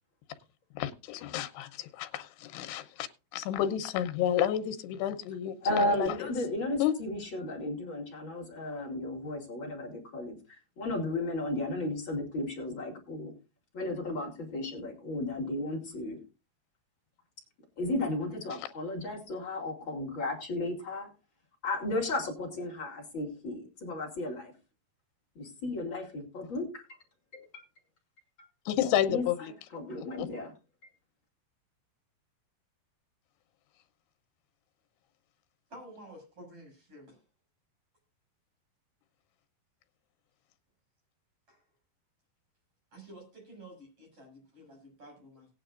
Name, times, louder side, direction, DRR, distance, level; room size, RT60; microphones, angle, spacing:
voice 1, 0.8-3.1 3.3-6.3 6.8-6.9 28.7-29.5 30.2-30.3, left 11 dB, 90° left, 10 dB, 3.1 m, -30 dB
voice 2, 5.6-13.3 13.7-16.2 17.8-21.1 21.6-24.5 25.4-26.8 27.3-27.6 29.1-29.2 29.7-30.5, left 2 dB, 35° left, 1 dB, 2.8 m, -34 dB
voice 3, 35.7-37.2 41.5-41.6 42.9-45.5, right 1 dB, 35° right, 1 dB, 7.5 m, -51 dB
18.5 x 9.6 x 2.5 m, 0.30 s
omnidirectional pair, 4.7 m